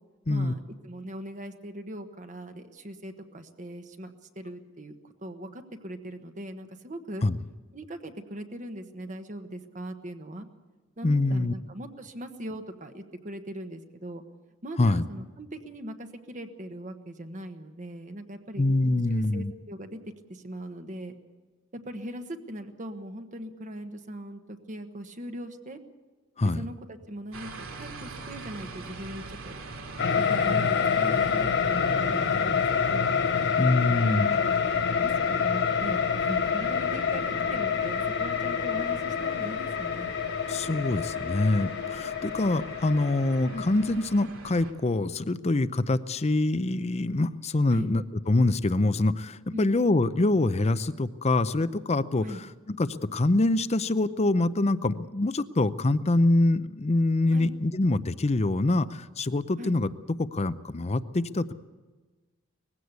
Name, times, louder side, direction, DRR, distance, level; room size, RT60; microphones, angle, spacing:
voice 1, 0.3-7.3 7.7-10.5 11.0-14.2 14.6-18.6 19.1-20.0 20.3-21.1 21.7-25.8 26.5-29.6 30.3-30.7 30.9-32.6 32.9-33.1 34.0-34.5 35.0-40.1 47.7-47.9 49.5-49.7 52.2-52.4 57.3-57.5 59.6-59.7, right 1 dB, 40° right, 7 dB, 1.3 m, -40 dB
voice 2, 11.0-11.5 14.8-15.0 18.6-19.5 26.4-26.6 33.6-34.3 40.5-59.9 60.2-61.5, left 2 dB, 30° left, 14 dB, 0.6 m, -25 dB
sound 1, 27.3-44.7, right 3 dB, 90° right, 2.5 m, -43 dB
sound 2, 30.0-44.2, left 6 dB, 55° left, 0.9 m, -27 dB
20.0 x 16.0 x 8.2 m, 1.3 s
head